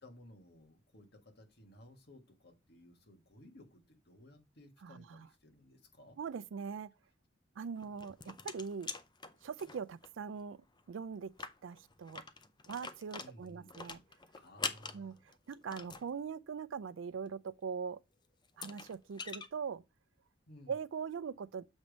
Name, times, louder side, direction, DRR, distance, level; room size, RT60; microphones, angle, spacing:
voice 1, 0.0-6.2 13.2-13.8 14.3-15.3 20.5-20.8, left 1 dB, 60° left, 1.7 m, -58 dB
voice 2, 4.8-5.3 6.2-6.9 7.6-8.9 9.4-10.6 10.9-11.3 11.6-12.2 12.7-14.0 14.9-18.0 18.6-19.8 20.7-21.7, right 6 dB, 85° right, 0.4 m, -41 dB
sound 1, 7.8-10.1 10.4-10.5 10.8-10.9 11.3-16.1 17.9-18.0 18.4-19.5, left 5 dB, 25° left, 0.5 m, -44 dB
7.1 x 3.4 x 5.2 m
head